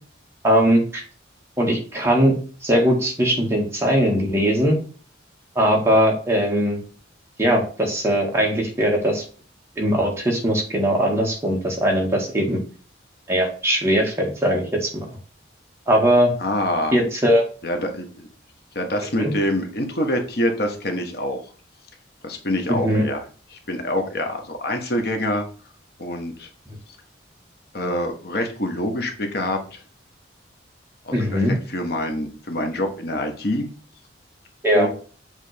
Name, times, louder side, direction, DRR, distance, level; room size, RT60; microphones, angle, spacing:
voice 1, 0.4-1.0 1.6-2.3 2.6-4.8 5.6-6.8 7.4-9.2 9.8-12.6 13.3-15.1 15.9-16.3 16.9-17.4 19.2-19.3 22.7-23.0 31.1-31.5 34.6-34.9, equal, 15° right, -1 dB, 1.9 m, -20 dB
voice 2, 16.4-17.0 17.6-18.3 18.7-21.4 22.2-23.2 23.5-25.4 26.0-26.5 27.7-29.8 31.0-33.7 34.7-34.9, left 1 dB, 55° left, 4 dB, 1.2 m, -26 dB
7.5 x 3.7 x 5.0 m, 0.39 s
head